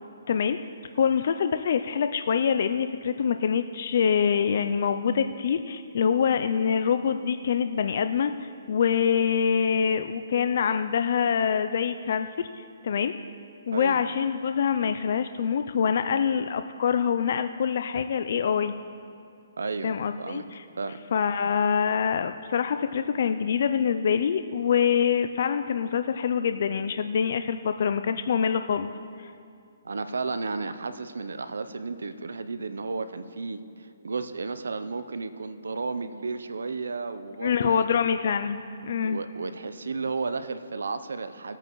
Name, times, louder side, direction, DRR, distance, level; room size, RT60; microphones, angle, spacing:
voice 1, 0.3-0.6 0.9-13.1 13.7-18.7 19.8-20.6 21.1-28.9 29.2-29.3 37.4-39.2, left 7 dB, 55° left, 9 dB, 0.4 m, -25 dB
voice 2, 19.6-20.4 20.8-21.0 29.8-37.8 39.0-41.6, right 4 dB, 90° right, 11 dB, 0.6 m, -33 dB
19.5 x 8.7 x 3.1 m, 2.4 s
hypercardioid pair, 155°, 0 cm